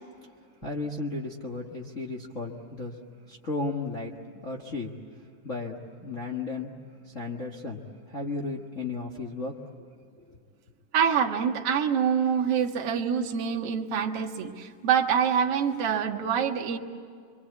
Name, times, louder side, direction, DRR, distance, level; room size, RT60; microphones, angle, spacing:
voice 1, 0.6-2.9 3.3-4.2 4.4-4.9 5.4-6.7 7.1-9.6 10.3-10.4, left 3 dB, 45° left, 0 dB, 0.9 m, -34 dB
voice 2, 10.9-16.8, right 7 dB, 50° right, 1 dB, 2.2 m, -25 dB
28.0 x 24.0 x 8.3 m, 2.2 s
omnidirectional pair, 4.0 m